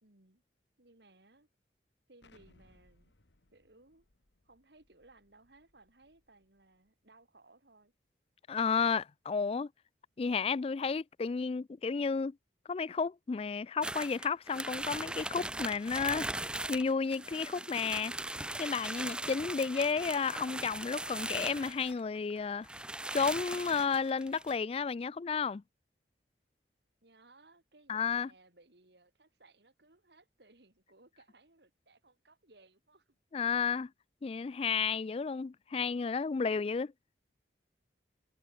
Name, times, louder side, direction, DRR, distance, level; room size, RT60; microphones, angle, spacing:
voice 1, 0.0-0.4 0.8-1.5 2.1-3.1 3.5-4.1 4.4-7.9 27.0-33.2, right 2 dB, 70° right, 2.9 m, -62 dB
Explosion, 2.2-6.9, left 2 dB, 80° left, 2.2 m, -68 dB
voice 2, 8.5-9.7 10.2-12.4 12.7-16.3 16.7-18.1 18.6-22.7 23.1-25.6 27.9-28.3 33.3-33.9 34.2-36.9, left 5 dB, 35° left, 0.3 m, -32 dB
sound 1, 13.8-22.0 22.4-22.5 22.6-24.6, right 1 dB, 5° right, 0.7 m, -39 dB
head